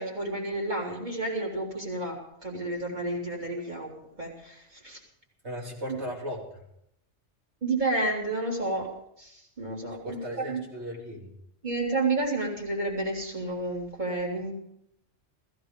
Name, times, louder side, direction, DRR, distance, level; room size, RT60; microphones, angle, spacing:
voice 1, 0.0-5.0 5.9-6.0 7.6-8.9 9.2-10.2 10.5-10.6 11.6-14.5, right 2 dB, 40° right, -2 dB, 3.6 m, -31 dB
voice 2, 5.4-6.5 10.0-11.3, equal, 70° right, -1 dB, 3.6 m, -36 dB
15.5 x 15.0 x 5.2 m, 0.76 s
omnidirectional pair, 1.2 m